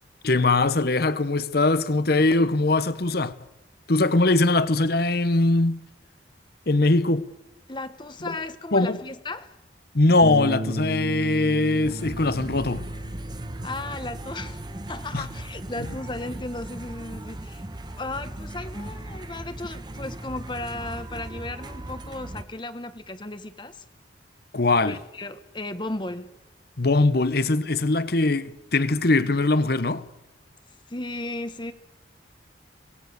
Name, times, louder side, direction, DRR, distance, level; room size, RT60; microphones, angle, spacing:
voice 1, 0.2-3.3 3.9-5.8 6.7-7.2 8.3-8.4 8.7-9.0 9.9-12.8 15.1-15.2 24.5-25.0 26.8-30.0, left 2 dB, 55° left, 1.0 m, -21 dB
voice 2, 7.7-9.6 13.6-17.6 18.0-23.8 24.9-26.3 30.9-31.7, left 2 dB, 25° left, 1.2 m, -35 dB
Bass guitar, 10.2-16.5, right 1 dB, 50° right, 1.5 m, -35 dB
sound 1, 11.8-22.5, right 1 dB, 25° right, 1.0 m, -38 dB
25.5 x 18.5 x 6.8 m
head